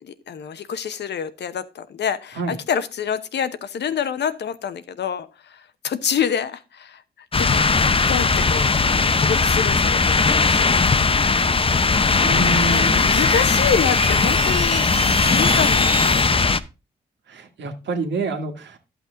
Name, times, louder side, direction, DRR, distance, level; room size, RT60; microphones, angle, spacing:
voice 1, 0.0-7.0 7.4-7.7 8.1-8.7 9.2-10.8 12.7-14.9 15.2-16.2, left 7 dB, 70° left, 13 dB, 0.9 m, -27 dB
sound 1, 7.3-16.6, left 4 dB, 30° left, 0.7 m, -18 dB
sound 2, 11.5-16.3, right 3 dB, 35° right, 1.7 m, -31 dB
voice 2, 12.2-13.0 17.3-18.8, right 3 dB, 75° right, 5 dB, 1.6 m, -27 dB
11.5 x 6.0 x 3.8 m, 0.30 s
supercardioid pair, 55°, 19 cm